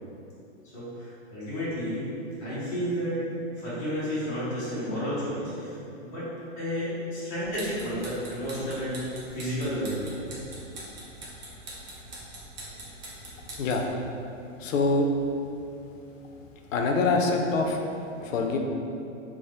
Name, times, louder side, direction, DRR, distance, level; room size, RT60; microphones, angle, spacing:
voice 1, 0.7-2.1 2.4-6.3 6.6-10.2, equal, 15° left, -12 dB, 0.4 m, -31 dB
sound 1, 7.4-13.9, right 1 dB, 35° right, 0.6 m, -43 dB
voice 2, 14.6-15.1 16.7-17.8 18.2-18.6, left 3 dB, 85° left, 2 dB, 0.5 m, -24 dB
3.2 x 2.1 x 2.8 m, 2.7 s
hypercardioid pair, 160°, 38 cm